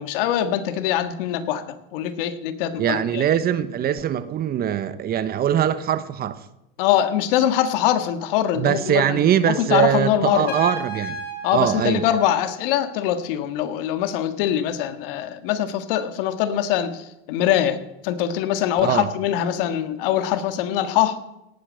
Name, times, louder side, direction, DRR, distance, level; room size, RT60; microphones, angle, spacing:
voice 1, 0.0-3.2 6.8-10.5 11.4-21.2, left 11 dB, 70° left, 1.8 m, -23 dB
voice 2, 2.8-6.4 8.6-11.2 11.5-12.1 18.8-19.1, right 10 dB, 35° right, 1.0 m, -22 dB
Trumpet, 10.5-13.1, left 1 dB, 35° left, 4.6 m, -35 dB
18.0 x 8.4 x 7.7 m
supercardioid pair, 125°, 29 cm